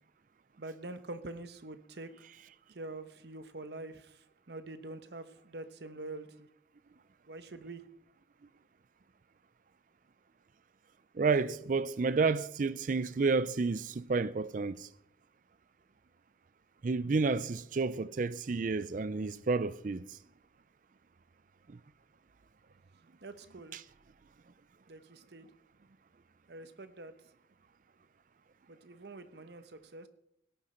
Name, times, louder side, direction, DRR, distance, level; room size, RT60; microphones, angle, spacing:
voice 1, 0.6-2.3 2.7-6.5 7.3-7.8 23.2-23.8 24.9-25.5 26.5-27.1 28.7-30.1, right 2 dB, 60° right, 0.9 m, -45 dB
voice 2, 11.2-14.9 16.8-20.0, right 4 dB, 45° right, 0.4 m, -30 dB
17.5 x 10.0 x 4.3 m
head